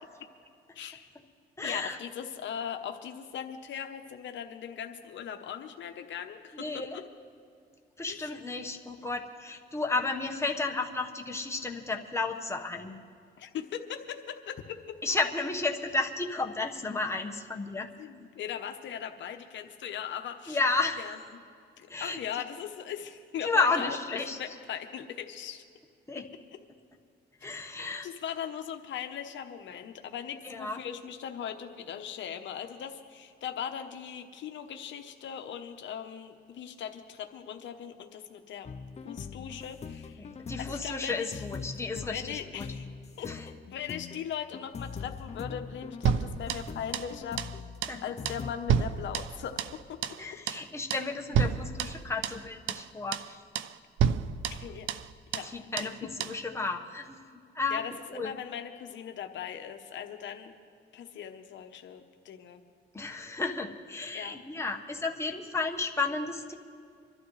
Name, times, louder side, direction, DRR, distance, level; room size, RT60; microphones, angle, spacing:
voice 1, 0.7-1.1 1.6-7.0 8.1-8.3 13.4-15.0 18.0-20.6 21.0-21.2 21.8-25.6 28.0-38.7 39.0-40.2 40.6-41.4 42.1-42.8 43.2-43.3 43.7-47.4 48.0-49.6 49.9-50.0 50.3-50.4 54.5-54.9 55.3-55.5 57.7-60.5 60.9-62.6 64.1-64.4, left 8 dB, 70° left, 6 dB, 0.9 m, -39 dB
voice 2, 1.6-2.0 6.5-7.0 8.0-13.0 15.0-17.9 20.5-21.2 21.9-22.2 23.4-24.4 26.1-26.2 27.4-28.1 30.4-30.8 40.2-42.7 43.2-43.4 47.9-48.0 50.2-53.4 55.4-57.2 57.5-57.8 58.1-58.3 62.9-66.5, left 3 dB, 15° left, 2 dB, 1.2 m, -32 dB
sound 1, 38.6-48.5, left 5 dB, 35° left, 0.6 m, -42 dB
sound 2, 46.1-47.1 47.4-47.6 47.8-48.0 48.3-49.8 50.0-50.2 50.5-50.7 50.9-51.1 51.3-52.4 52.7-52.9 53.1-53.3 53.6-53.7 54.0-55.1 55.3-55.5 55.8-56.0 56.2-56.4, right 8 dB, 80° right, 0.6 m, -30 dB
25.5 x 12.0 x 3.2 m, 2.3 s
cardioid pair, 90°, 20 cm